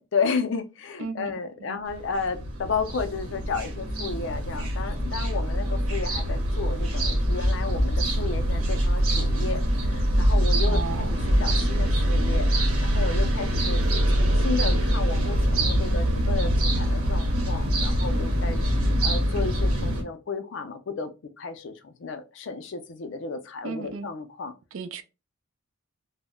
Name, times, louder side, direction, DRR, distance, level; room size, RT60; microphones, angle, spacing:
voice 1, 0.0-13.8 14.1-24.5, left 4 dB, 55° left, 0.4 m, -33 dB
voice 2, 1.0-1.3 1.6-1.8 10.7-11.2 23.6-24.1 24.7-25.0, right 5 dB, 70° right, 0.4 m, -35 dB
sound 1, 1.9-20.0, equal, 90° right, 0.9 m, -24 dB
2.0 x 2.0 x 3.5 m
head